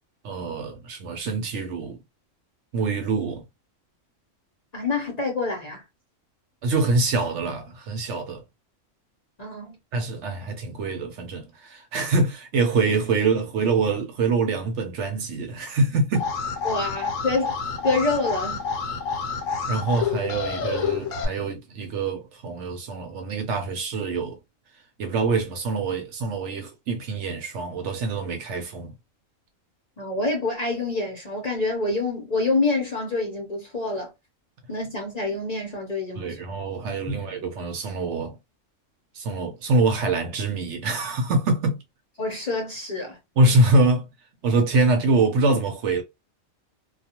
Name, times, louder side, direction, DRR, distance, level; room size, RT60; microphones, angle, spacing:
voice 1, 0.2-2.0 2.7-3.4 6.6-8.4 9.9-16.3 19.7-24.4 25.0-28.9 36.2-38.4 39.1-41.8 43.4-44.1 44.4-46.0, right 3 dB, 65° right, 0.9 m, -24 dB
voice 2, 4.7-5.8 9.4-9.8 16.6-17.6 17.8-18.7 30.0-34.1 34.7-36.4 37.1-37.2 42.2-43.2, left 3 dB, 40° left, 0.7 m, -27 dB
Alarm, 16.1-21.2, left 5 dB, 80° left, 1.0 m, -28 dB
2.3 x 2.3 x 2.8 m
omnidirectional pair, 1.4 m